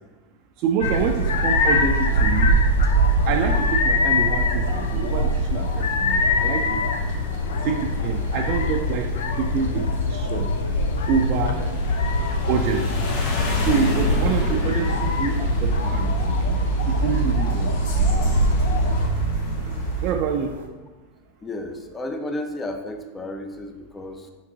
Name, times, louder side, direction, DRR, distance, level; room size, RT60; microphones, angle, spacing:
voice 1, 0.6-2.6 3.3-6.8 7.6-9.1 9.4-10.5 11.1-11.6 12.5-13.1 13.6-17.7 20.0-20.5, right 7 dB, 50° right, 3 dB, 0.3 m, -26 dB
sound 1, 0.8-19.1, left 4 dB, 80° left, 0.4 m, -24 dB
sound 2, 0.8-20.7, right 4 dB, 75° right, 0.7 m, -28 dB
sound 3, 0.9-20.1, right 2 dB, 60° left, 1.0 m, -29 dB
voice 2, 21.4-24.3, left 1 dB, 20° left, 5 dB, 0.5 m, -32 dB
5.2 x 3.6 x 2.8 m, 1.3 s
hypercardioid pair, 105°, 0 cm